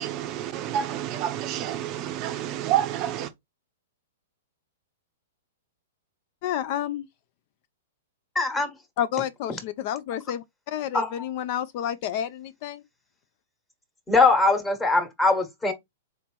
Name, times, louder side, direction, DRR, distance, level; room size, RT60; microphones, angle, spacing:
voice 1, 0.0-3.3, right 11 dB, 40° right, 0.5 m, -28 dB
voice 2, 6.4-7.1 9.0-12.8, left 10 dB, 50° left, 0.3 m, -30 dB
voice 3, 8.3-8.7 10.9-11.2 14.1-15.7, left 3 dB, 10° left, 1.2 m, -21 dB
4.2 x 2.8 x 3.4 m
hypercardioid pair, 120°, 0 cm